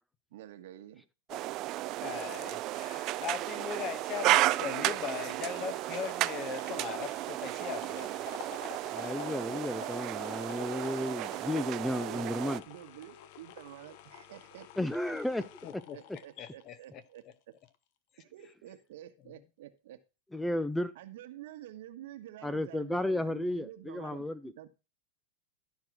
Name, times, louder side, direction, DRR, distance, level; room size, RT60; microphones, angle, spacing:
voice 1, 0.3-1.0 12.0-12.2 12.7-14.7 15.9-17.5 18.2-20.0 20.9-24.7, right 13 dB, 75° right, 1.4 m, -49 dB
sound 1, 1.3-12.6, right 16 dB, 45° right, 0.4 m, -33 dB
voice 2, 2.0-8.3 15.6-17.0, left 8 dB, 40° left, 1.3 m, -40 dB
sound 2, 4.1-17.3 17.7-17.8, left 11 dB, 60° left, 1.0 m, -50 dB
voice 3, 8.9-12.6 14.8-15.5 15.7-15.8 20.3-20.9 22.4-24.5, left 1 dB, 5° left, 0.6 m, -33 dB
12.5 x 4.7 x 6.1 m
supercardioid pair, 120°, 0 cm